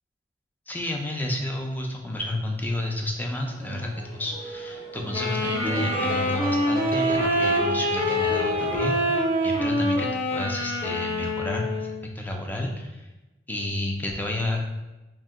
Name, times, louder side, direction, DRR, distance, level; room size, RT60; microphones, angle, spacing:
voice 1, 0.7-13.1 13.5-14.6, left 1 dB, 10° left, 1 dB, 0.4 m, -31 dB
sound 1, 3.4-9.5, right 1 dB, 15° right, 0.7 m, -39 dB
Wind instrument woodwind instrument, 5.1-12.0, left 1 dB, 30° left, 0.7 m, -25 dB
sound 2, 5.6-9.5, right 4 dB, 50° right, 0.5 m, -36 dB
2.7 x 2.1 x 3.5 m, 1.1 s
head